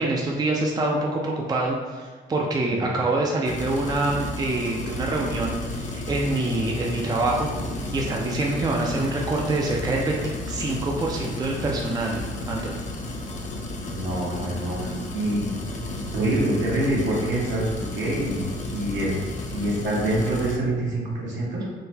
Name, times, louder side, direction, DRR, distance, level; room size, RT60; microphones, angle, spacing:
voice 1, 0.0-10.2 10.5-12.7, right 2 dB, 20° right, -1 dB, 0.4 m, -26 dB
sound 1, 3.4-20.6, left 2 dB, 40° left, 0.5 m, -33 dB
voice 2, 13.8-14.8 15.1-17.7 17.9-19.1 19.5-21.6, right 1 dB, 70° right, -5 dB, 1.1 m, -26 dB
3.8 x 2.1 x 2.7 m, 1.5 s
cardioid pair, 90°, 20 cm